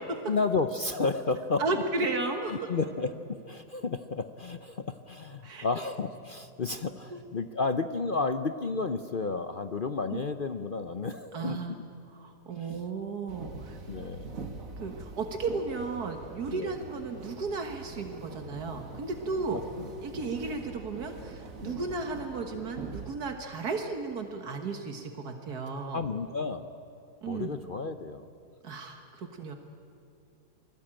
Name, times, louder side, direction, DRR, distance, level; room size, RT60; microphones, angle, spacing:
voice 1, 0.3-1.6 2.7-11.6 12.6-12.8 13.9-14.4 16.5-16.7 19.5-19.9 21.6-21.9 25.9-26.7 27.3-28.3, left 4 dB, 45° left, 9 dB, 0.8 m, -32 dB
voice 2, 1.6-2.5 5.4-5.7 7.1-7.2 10.1-10.2 11.3-11.8 12.1-13.8 14.8-19.6 20.0-26.0 27.2-27.6 28.6-29.5, right 3 dB, 75° right, 5 dB, 2.0 m, -34 dB
sound 1, 13.3-23.1, right 3 dB, 55° right, 2.0 m, -44 dB
28.5 x 20.5 x 8.9 m, 2.7 s
omnidirectional pair, 1.7 m